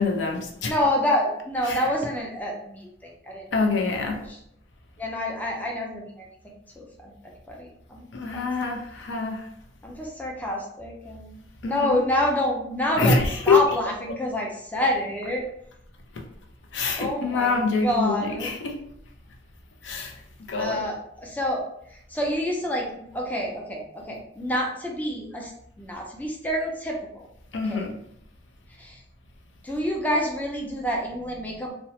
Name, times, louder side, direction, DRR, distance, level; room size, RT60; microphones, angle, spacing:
voice 1, 0.0-0.7 1.7-1.9 3.5-4.3 8.1-9.5 11.6-12.0 12.9-13.6 16.7-18.8 19.8-20.1 20.4-20.8 27.5-27.9, left 4 dB, 80° left, 2 dB, 0.5 m, -25 dB
voice 2, 0.6-3.4 3.9-4.4 5.0-6.3 6.8-8.4 9.8-15.5 17.0-18.5 20.5-25.5 25.8-27.3 27.7-27.9 28.8-29.0 29.6-31.7, left 1 dB, 10° left, -1 dB, 0.4 m, -28 dB
2.8 x 2.0 x 2.9 m, 0.73 s
head